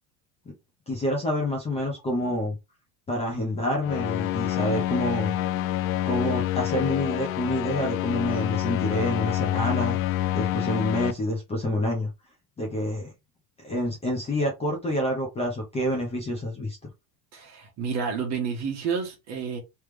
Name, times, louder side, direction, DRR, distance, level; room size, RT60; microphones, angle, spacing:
voice 1, 0.9-2.5 3.1-5.3 6.0-10.0 10.3-12.1 12.6-13.1 13.6-16.8, left 1 dB, 15° left, 0.8 m, -27 dB
sound 1, 3.8-11.1, left 13 dB, 55° left, 0.5 m, -27 dB
voice 2, 17.3-19.6, right 6 dB, 35° right, 1.5 m, -30 dB
3.4 x 3.2 x 3.3 m
cardioid pair, 165°, 49 cm